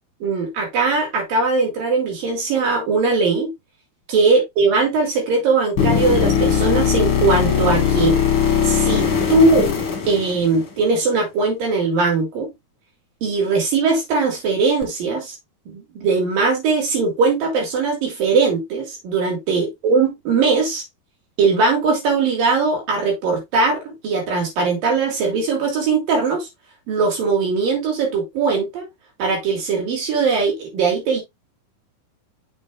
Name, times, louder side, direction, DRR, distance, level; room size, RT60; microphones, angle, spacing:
voice 1, 0.2-3.5 4.1-8.2 8.6-9.7 10.1-12.5 13.2-15.3 15.7-20.8 21.4-26.5 26.9-28.9 29.2-31.2, right 4 dB, 65° right, 4.9 m, -20 dB
sound 1, 5.8-10.8 14.8-14.9, left 7 dB, 40° left, 2.3 m, -19 dB
7.8 x 6.9 x 2.6 m
omnidirectional pair, 4.5 m